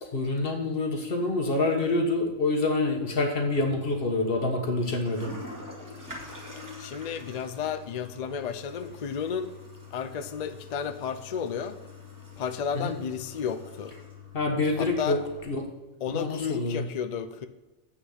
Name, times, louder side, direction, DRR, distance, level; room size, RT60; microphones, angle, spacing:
voice 1, 0.0-5.3 12.7-12.9 14.3-15.2 15.4-15.6 16.1-16.9, left 2 dB, 45° left, 3 dB, 1.4 m, -27 dB
Toilet flush, 3.5-15.4, left 4 dB, 15° right, 2.1 m, -45 dB
voice 2, 6.8-9.5 9.9-11.8 12.4-13.9 14.8-15.2 16.0-17.5, left 7 dB, 75° left, 10 dB, 0.3 m, -32 dB
8.0 x 6.2 x 5.7 m, 1.1 s
omnidirectional pair, 1.4 m